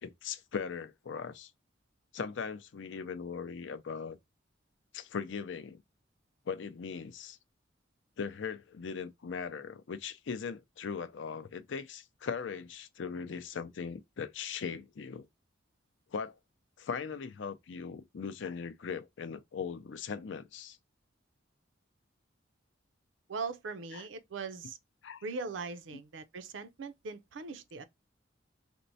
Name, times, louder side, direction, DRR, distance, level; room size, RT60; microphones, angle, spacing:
voice 1, 0.0-1.5 2.1-4.2 4.9-5.8 6.5-7.4 8.2-15.3 16.1-16.4 16.8-20.8 23.9-24.0 25.0-25.2, left 6 dB, 70° left, 0.5 m, -39 dB
voice 2, 23.3-24.8 25.2-27.8, right 4 dB, 70° right, 0.5 m, -40 dB
4.3 x 2.0 x 2.6 m
head